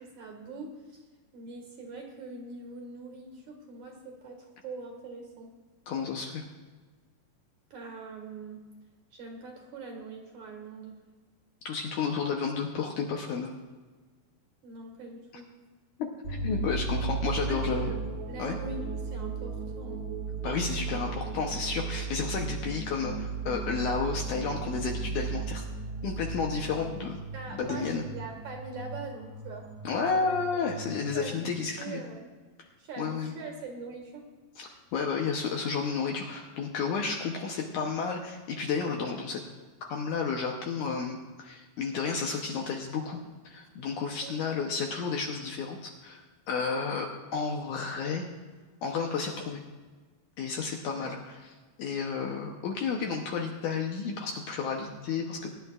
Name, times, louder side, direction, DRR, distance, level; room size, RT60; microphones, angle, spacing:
voice 1, 0.2-1.1 1.3-5.5 7.7-8.6 9.1-10.9 14.6-15.5 17.3-17.9 18.3-20.1 27.3-29.7 30.1-30.7 31.1-31.5 31.8-32.3 32.8-34.3 44.2-44.3 50.9-51.2, right 3 dB, 55° right, 1 dB, 2.9 m, -42 dB
voice 2, 5.9-6.4 11.7-13.5 16.3-17.9 18.4-18.6 20.4-25.6 26.0-27.2 27.5-28.0 29.8-32.0 33.0-33.3 34.6-39.4 39.9-43.2 43.4-46.2 46.5-48.3 48.8-49.6 50.4-51.5 51.8-55.5, left 5 dB, 70° left, 2 dB, 2.0 m, -32 dB
sound 1, 16.2-31.0, right 4 dB, 40° right, 2.1 m, -36 dB
22.5 x 11.0 x 2.4 m, 1.4 s
omnidirectional pair, 4.3 m